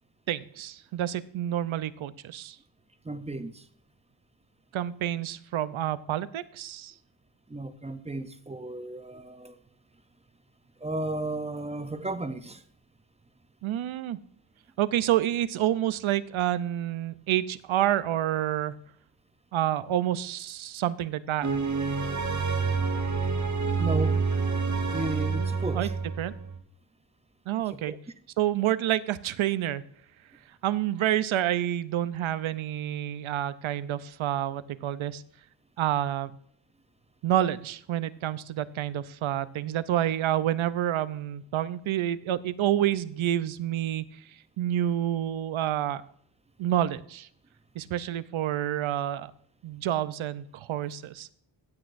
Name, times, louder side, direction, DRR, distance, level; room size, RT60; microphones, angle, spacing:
voice 1, 0.3-2.6 4.7-6.9 13.6-14.2 14.8-18.7 19.5-21.5 25.7-25.9 26.2-26.3 27.5-27.9 28.4-29.8 30.6-35.2 35.8-36.3 37.2-44.0 44.6-46.0 46.6-47.3 47.8-49.3 49.6-51.3, right 12 dB, 80° right, 0.7 m, -28 dB
voice 2, 3.0-3.6 7.5-9.6 10.8-12.6 23.8-24.2 24.9-25.9 27.7-28.0, right 2 dB, 15° right, 0.5 m, -34 dB
sound 1, 21.4-26.6, right 4 dB, 35° right, 0.9 m, -28 dB
15.5 x 8.2 x 2.6 m
wide cardioid pair, 130°, 48 cm